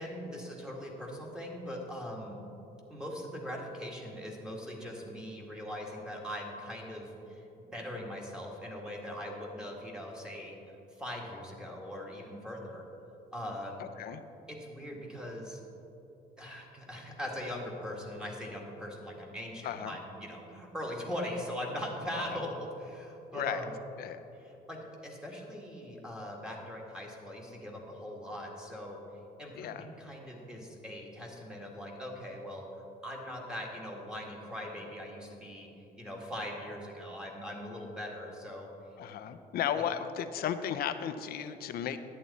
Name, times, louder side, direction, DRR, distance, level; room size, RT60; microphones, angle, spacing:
voice 1, 0.0-2.4 2.9-12.8 13.3-13.7 14.5-15.6 16.4-23.7 24.4-29.0 29.4-35.7 36.0-38.7, equal, 5° right, -2 dB, 1.8 m, -41 dB
voice 2, 13.8-14.2 19.6-20.0 22.1-22.4 23.3-23.6 24.0-24.2 29.6-29.9 39.0-42.0, left 9 dB, 65° left, 10 dB, 0.6 m, -35 dB
11.0 x 8.8 x 4.1 m, 3.0 s
cardioid pair, 110°, 17 cm